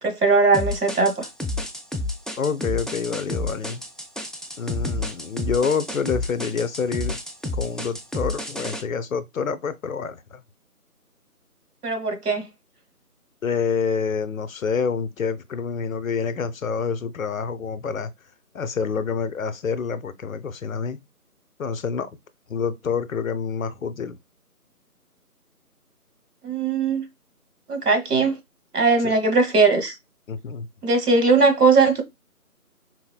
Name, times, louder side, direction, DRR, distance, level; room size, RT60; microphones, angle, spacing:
voice 1, 0.0-1.3 11.8-12.5 26.4-27.0 27.7-28.4 28.7-29.9 30.8-32.0, right 4 dB, 85° right, 1.1 m, -19 dB
sound 1, 0.5-8.8, left 2 dB, ahead, 0.3 m, -30 dB
voice 2, 2.4-3.8 4.6-7.2 7.5-10.4 13.4-18.1 18.5-21.0 21.6-22.1 22.5-24.2 29.0-29.2 30.3-30.7, left 6 dB, 65° left, 0.5 m, -27 dB
4.0 x 2.1 x 2.2 m
figure-of-eight pair, 175°, 45 cm